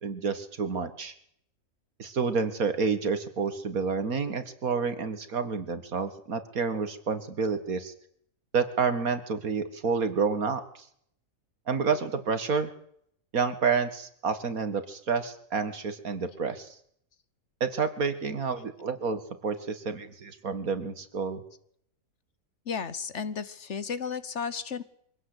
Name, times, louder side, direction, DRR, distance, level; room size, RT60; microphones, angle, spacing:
voice 1, 0.0-1.1 2.0-7.9 8.5-10.8 11.7-12.7 13.3-16.8 17.6-21.4, right 5 dB, 75° right, 10 dB, 2.3 m, -29 dB
voice 2, 22.7-24.8, left 6 dB, 55° left, 15 dB, 1.3 m, -33 dB
24.0 x 17.0 x 8.1 m, 0.68 s
omnidirectional pair, 1.5 m